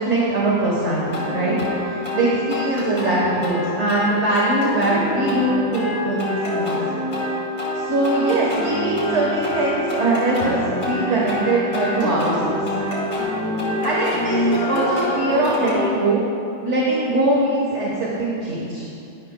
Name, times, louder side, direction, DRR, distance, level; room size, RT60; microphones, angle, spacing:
voice 1, 0.0-6.8 7.7-10.6 10.8-12.5 13.8-16.2 16.6-18.8, right 2 dB, 40° right, -5 dB, 1.3 m, -22 dB
sound 1, 1.1-15.9, left 1 dB, 55° left, 2.3 m, -25 dB
12.0 x 11.0 x 2.2 m, 2.6 s
omnidirectional pair, 2.1 m